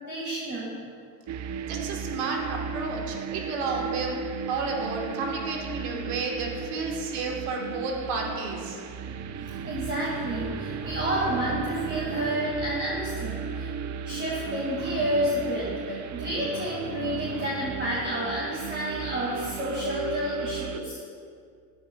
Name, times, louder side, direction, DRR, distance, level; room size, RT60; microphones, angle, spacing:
voice 1, 0.1-0.8 9.1-13.7 14.0-21.0, equal, 25° right, -7 dB, 2.2 m, -30 dB
sound 1, 1.3-20.8, right 7 dB, 40° right, 0.5 m, -35 dB
voice 2, 1.7-4.2 4.5-8.8, right 3 dB, 85° right, 0 dB, 1.6 m, -31 dB
11.0 x 8.7 x 2.4 m, 2.3 s
supercardioid pair, 80°, 44 cm